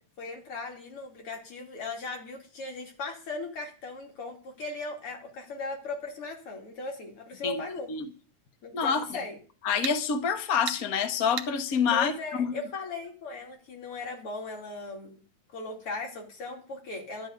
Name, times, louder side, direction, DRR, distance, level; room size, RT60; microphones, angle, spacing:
voice 1, 0.2-7.9 8.6-9.4 11.9-15.2 15.5-17.3, left 3 dB, 40° left, 1 dB, 3.6 m, -38 dB
sound 1, 8.6-8.7 9.8-10.0 10.7-10.8 11.4-11.5, right 10 dB, 65° right, 2.2 m, -34 dB
voice 2, 8.7-9.2 9.6-12.6, left 6 dB, 70° left, 6 dB, 0.8 m, -27 dB
12.0 x 6.4 x 9.6 m, 0.38 s
omnidirectional pair, 3.9 m